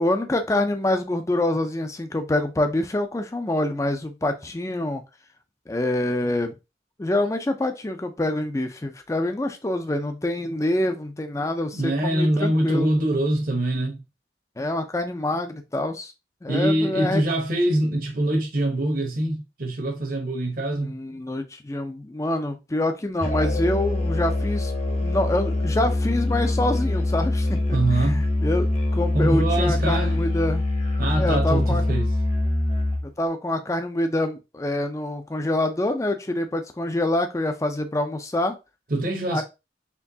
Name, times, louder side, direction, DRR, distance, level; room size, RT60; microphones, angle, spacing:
voice 1, 0.0-5.0 5.7-6.5 7.0-12.9 14.6-16.1 16.4-17.2 20.8-24.7 25.0-30.6 31.2-31.8 33.2-38.6 39.3-39.4, left 1 dB, 15° left, 0.4 m, -26 dB
voice 2, 11.7-14.0 16.5-21.0 27.7-28.2 29.1-30.2 31.0-32.1 38.9-39.4, right 1 dB, 50° right, 1.0 m, -24 dB
Musical instrument, 23.2-33.1, left 1 dB, 35° left, 0.9 m, -24 dB
4.4 x 3.1 x 2.7 m
head